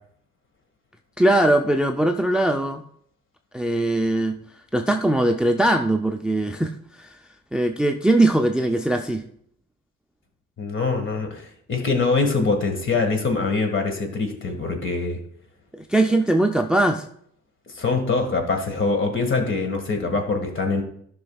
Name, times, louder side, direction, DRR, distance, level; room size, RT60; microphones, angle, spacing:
voice 1, 1.2-2.8 3.5-4.4 4.7-7.2 7.5-9.2 15.7-17.0, right 1 dB, 5° right, 5 dB, 0.4 m, -21 dB
voice 2, 10.6-15.2 17.7-20.8, left 3 dB, 40° left, 5 dB, 1.7 m, -23 dB
12.5 x 5.9 x 2.3 m, 0.66 s
cardioid pair, 90°, 30 cm